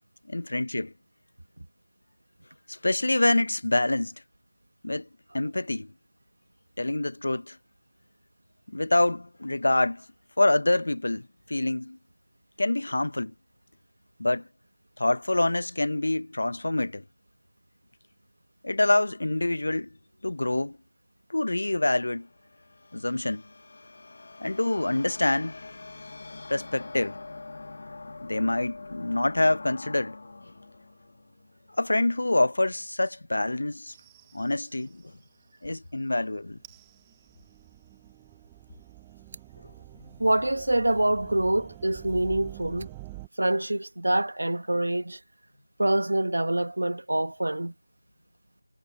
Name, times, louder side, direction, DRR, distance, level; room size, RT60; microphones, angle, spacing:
voice 1, 0.3-0.9 2.7-4.1 4.8-5.1 5.3-5.9 6.8-7.6 8.7-10.0 10.4-12.0 12.6-13.3 14.2-14.4 15.0-17.0 18.6-19.9 20.2-20.8 21.3-22.3 22.9-23.4 24.4-25.6 26.5-27.2 28.2-30.2 31.8-33.9 34.3-35.0 35.6-36.6, left 2 dB, 55° left, 0.8 m, -26 dB
sound 1, 21.8-32.1, left 3 dB, 35° left, 1.2 m, -45 dB
sound 2, 33.9-35.0 36.5-43.3, right 20 dB, 5° right, 0.8 m, -47 dB
sound 3, 38.6-45.0, right 4 dB, 25° right, 7.4 m, -59 dB
voice 2, 40.2-42.9 43.4-45.2 45.8-47.7, right 1 dB, 70° right, 1.4 m, -25 dB
figure-of-eight pair, 175°, 0 cm